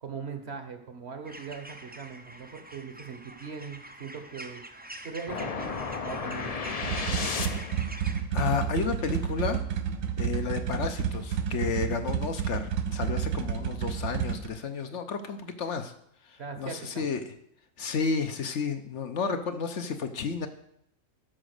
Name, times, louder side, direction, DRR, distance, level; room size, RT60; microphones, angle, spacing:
voice 1, 0.0-4.6 5.0-6.5 16.4-17.0, right 5 dB, 55° right, 7 dB, 1.2 m, -40 dB
sound 1, 1.2-8.2, right 1 dB, 10° right, 0.4 m, -45 dB
sound 2, 5.3-7.9, left 5 dB, 40° left, 0.6 m, -33 dB
sound 3, 6.8-14.5, right 8 dB, 80° right, 1.1 m, -30 dB
voice 2, 8.3-9.6 10.2-15.9 16.3-17.2 17.8-20.5, left 5 dB, 65° left, 7 dB, 1.1 m, -31 dB
12.0 x 5.0 x 6.5 m, 0.73 s
omnidirectional pair, 1.4 m